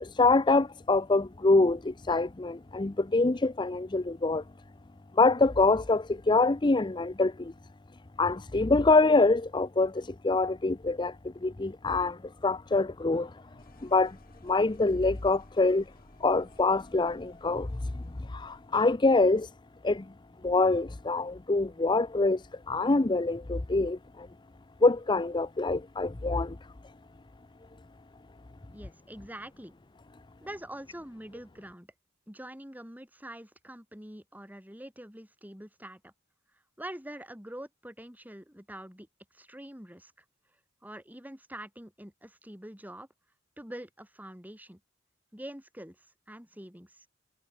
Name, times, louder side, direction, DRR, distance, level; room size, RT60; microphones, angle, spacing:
voice 1, 0.0-4.4 5.1-7.5 8.2-13.4 13.8-14.2 14.4-15.9 16.2-19.5 19.8-20.1 20.4-24.3 24.8-26.6, left 3 dB, 25° left, 0.6 m, -25 dB
sound 1, 11.0-18.8, left 1 dB, 50° left, 4.5 m, -59 dB
voice 2, 28.7-29.7 30.4-31.9 32.3-36.1 36.8-39.1 39.3-40.1 40.8-43.1 43.6-44.8 45.3-47.1, right 1 dB, 10° right, 4.2 m, -45 dB
head